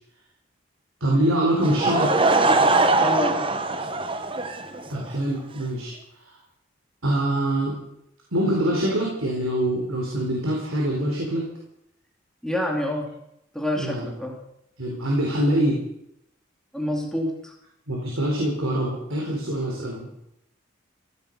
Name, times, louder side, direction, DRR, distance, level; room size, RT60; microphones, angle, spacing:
voice 1, 1.0-2.1 4.9-5.9 7.0-7.7 8.3-11.5 13.7-14.1 14.8-15.8 17.9-20.1, right 1 dB, 85° right, -2 dB, 3.9 m, -24 dB
Laughter / Crowd, 1.6-5.1, right 3 dB, 25° right, 1.0 m, -21 dB
voice 2, 3.0-3.4 12.4-13.1 13.5-14.3 16.7-17.5, left 1 dB, 5° left, 0 dB, 2.7 m, -27 dB
15.5 x 15.0 x 5.4 m, 0.80 s
head